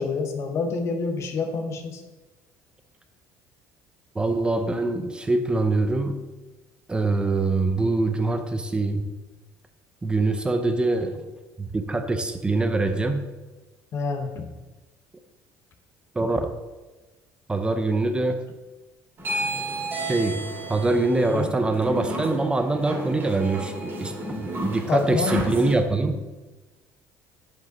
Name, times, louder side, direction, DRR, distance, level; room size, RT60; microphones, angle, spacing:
voice 1, 0.0-2.0 13.9-14.5 21.3-21.5 24.9-25.5, left 4 dB, 50° left, 6 dB, 1.0 m, -27 dB
voice 2, 4.1-6.2 6.9-9.0 10.0-11.3 11.6-13.2 16.1-16.5 17.5-18.4 20.1-26.2, right 2 dB, 15° right, 7 dB, 0.6 m, -24 dB
sound 1, 19.2-25.7, right 1 dB, 35° right, 2.2 m, -32 dB
7.7 x 5.4 x 3.9 m, 1.2 s
cardioid pair, 115°, 6 cm